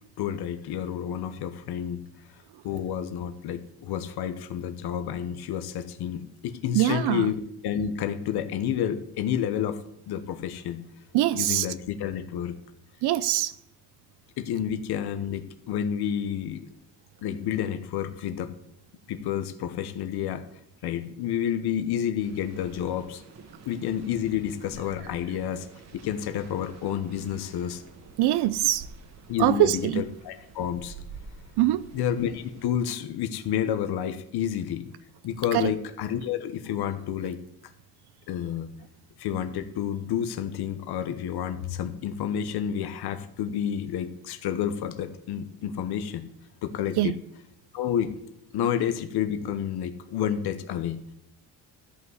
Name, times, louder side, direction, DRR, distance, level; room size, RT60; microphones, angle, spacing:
voice 1, 0.2-2.0 2.6-9.8 10.1-10.8 11.3-12.5 14.4-16.6 17.2-18.5 19.1-20.4 20.8-23.2 23.7-25.7 25.9-27.8 29.3-30.9 31.9-34.9 35.2-37.4 38.3-38.7 39.2-46.3 46.6-47.2 47.7-48.2 48.5-51.0, left 9 dB, 75° left, 1.0 m, -30 dB
voice 2, 6.7-7.3 11.1-11.7 13.0-13.5 28.2-28.9 29.4-30.0 31.6-31.9 35.5-35.7 47.0-47.1, right 14 dB, 85° right, 0.6 m, -23 dB
sound 1, 22.2-32.7, right 4 dB, 45° right, 1.4 m, -48 dB
13.5 x 5.6 x 7.9 m
cardioid pair, 175°, 38 cm